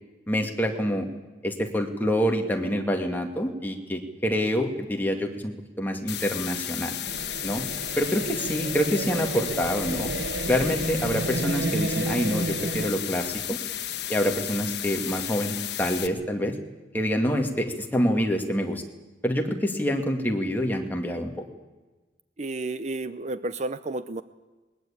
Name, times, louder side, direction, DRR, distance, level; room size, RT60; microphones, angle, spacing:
voice 1, 0.3-1.1 1.4-6.9 7.4-7.6 8.0-10.1 10.5-13.6 14.1-16.5 16.9-18.8 19.2-21.3, equal, 10° left, 2 dB, 2.2 m, -26 dB
sound 1, 6.1-16.1, left 11 dB, 65° left, 1.4 m, -33 dB
sound 2, 7.1-12.9, right 2 dB, 75° right, 1.1 m, -31 dB
voice 2, 22.4-24.2, right 2 dB, 40° right, 13 dB, 0.7 m, -31 dB
20.5 x 20.5 x 8.6 m, 1.2 s
head